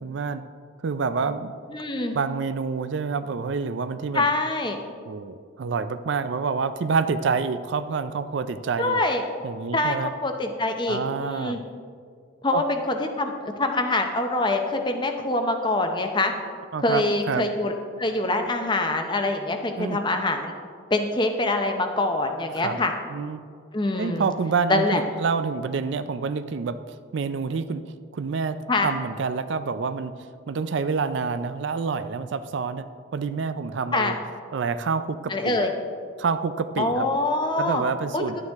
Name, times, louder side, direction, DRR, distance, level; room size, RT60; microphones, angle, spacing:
voice 1, 0.0-0.4 0.8-1.5 2.1-4.3 5.1-9.0 9.4-10.1 10.9-11.6 12.5-12.6 16.7-17.5 19.8-20.0 22.6-22.8 23.1-23.4 23.9-27.8 28.1-32.9 33.1-34.2 34.5-35.7 36.2-37.1 37.6-38.4, right 5 dB, 65° right, 12 dB, 0.4 m, -27 dB
voice 2, 1.7-2.1 4.1-4.8 8.8-9.2 9.7-10.0 10.2-11.6 12.4-16.3 16.8-17.7 18.0-20.5 20.9-22.9 23.7-24.3 24.7-25.0 28.7-28.9 33.9-34.1 35.3-35.7 36.8-37.8 38.1-38.2, left 2 dB, 25° left, 5 dB, 0.7 m, -24 dB
11.0 x 8.9 x 3.5 m, 2.1 s
head